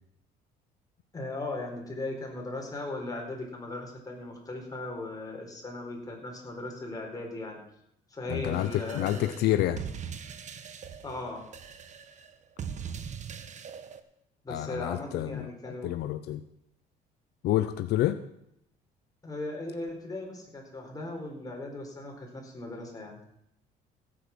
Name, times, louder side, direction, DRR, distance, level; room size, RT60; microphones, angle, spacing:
voice 1, 1.1-7.6 8.1-9.3 11.0-11.5 14.4-15.9 19.2-23.2, left 2 dB, 20° left, 0 dB, 4.6 m, -38 dB
voice 2, 8.3-9.8 14.5-16.4 17.4-18.2, left 13 dB, 75° left, 11 dB, 0.7 m, -28 dB
sound 1, 8.4-14.0, right 7 dB, 45° right, 1.2 m, -41 dB
16.5 x 8.6 x 6.2 m, 0.76 s
cardioid pair, 110°, 17 cm